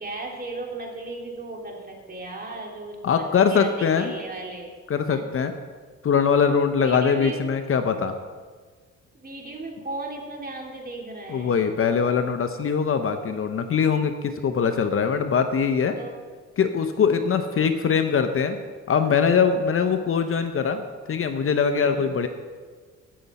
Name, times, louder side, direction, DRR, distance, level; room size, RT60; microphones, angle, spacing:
voice 1, 0.0-4.7 5.1-5.2 6.8-7.4 9.1-11.7 15.9-16.2 21.8-22.1, right 2 dB, 30° right, 0 dB, 2.6 m, -36 dB
voice 2, 3.0-4.1 4.9-5.5 6.0-8.1 11.3-16.0 16.6-18.6 18.9-20.8 21.1-22.3, left 6 dB, 45° left, 8 dB, 0.8 m, -22 dB
16.5 x 6.9 x 4.2 m, 1.5 s
cardioid pair, 90°, 30 cm